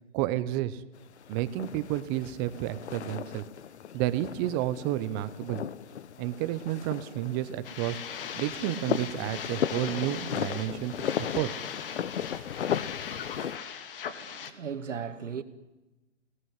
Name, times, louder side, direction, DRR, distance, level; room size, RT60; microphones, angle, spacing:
voice 1, 0.1-0.8 1.3-3.4 3.9-5.6 6.2-8.0 8.4-11.5, right 14 dB, 20° right, 0.9 m, -31 dB
sound 1, 1.0-13.6, left 9 dB, 65° left, 1.2 m, -36 dB
sound 2, 7.6-14.5, left 7 dB, 50° left, 2.5 m, -39 dB
voice 2, 14.2-15.4, right 7 dB, 85° right, 2.6 m, -37 dB
28.0 x 19.0 x 9.7 m
hypercardioid pair, 155°, 36 cm